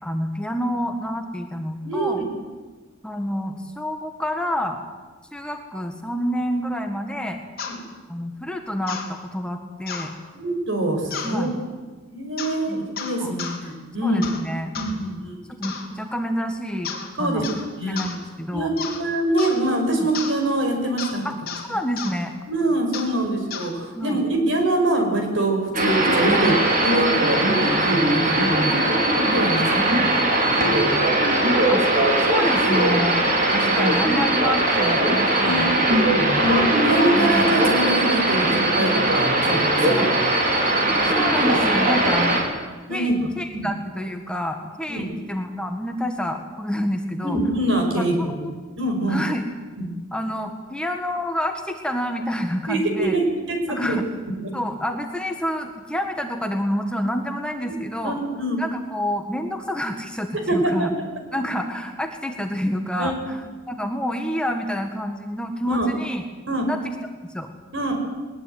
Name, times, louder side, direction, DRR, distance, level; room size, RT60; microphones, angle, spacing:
voice 1, 0.0-2.2 3.0-4.8 5.3-7.4 8.1-10.1 11.2-11.6 12.7-12.8 13.2-13.3 14.0-14.7 15.5-17.5 17.8-18.7 19.9-20.1 21.2-21.4 21.6-22.3 24.0-24.2 26.3-26.5 28.7-28.9 29.6-29.9 31.7-31.8 32.2-33.2 33.5-35.9 36.2-36.4 37.1-37.5 40.0-40.1 41.0-42.4 42.9-47.4 48.0-48.5 49.1-49.5 50.1-53.2 53.7-54.0 54.5-58.2 58.6-60.9 61.3-63.4 63.7-66.2 66.6-66.9 67.3-67.5, equal, 5° left, 4 dB, 1.7 m, -28 dB
voice 2, 1.8-2.2 7.7-7.8 10.3-11.5 12.1-14.3 14.7-15.3 17.2-17.5 17.8-18.0 18.5-21.2 22.5-28.7 29.3-29.9 30.2-31.0 35.4-35.8 36.4-38.5 38.7-40.0 42.9-43.3 43.5-43.7 44.9-45.2 47.2-48.3 48.8-49.2 49.8-49.9 52.7-54.0 58.0-58.6 60.3-61.1 63.0-63.2 65.7-65.9 66.5-66.6 67.7-67.9, right 1 dB, 60° right, 3 dB, 5.6 m, -24 dB
sound 1, 7.6-7.8 8.9-9.1 9.9-10.1 11.1-11.4 12.4-12.6 13.0-13.6 14.2-14.4 14.7-14.9 15.6-15.9 16.8-17.1 17.4-17.7 18.0-18.2 18.8-19.0 19.4-19.6 20.1-20.4 21.0-21.2 21.5-21.6 22.0-22.1 22.9-23.1 23.5-23.7, left 6 dB, 45° left, 3.9 m, -32 dB
sound 2, 25.7-42.4, right 1 dB, 40° right, 4.8 m, -20 dB
21.0 x 20.5 x 9.5 m, 1.3 s
head